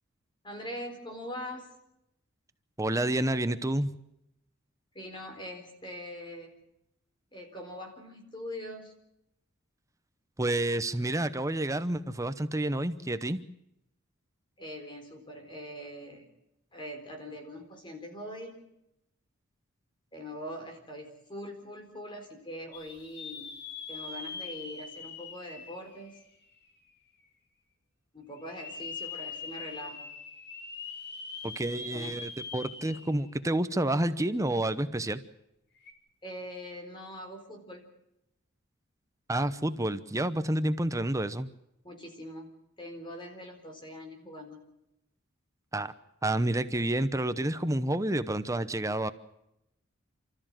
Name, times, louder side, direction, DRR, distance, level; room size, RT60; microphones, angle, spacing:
voice 1, 0.4-1.7 4.9-6.5 7.3-8.9 14.6-16.3 16.7-18.7 20.1-23.5 23.9-26.2 28.1-30.1 31.7-32.1 36.2-37.9 41.8-42.5 42.8-44.6, equal, 25° left, 3 dB, 4.2 m, -42 dB
voice 2, 2.8-3.9 10.4-13.4 31.4-35.2 39.3-41.5 45.7-45.9 46.2-49.1, right 1 dB, 15° right, 12 dB, 0.9 m, -29 dB
sound 1, 22.7-26.7 27.2-27.3 28.4-33.3 33.7-33.8 35.8-35.9, left 5 dB, 55° left, 2.6 m, -42 dB
29.5 x 14.0 x 7.5 m, 0.84 s
head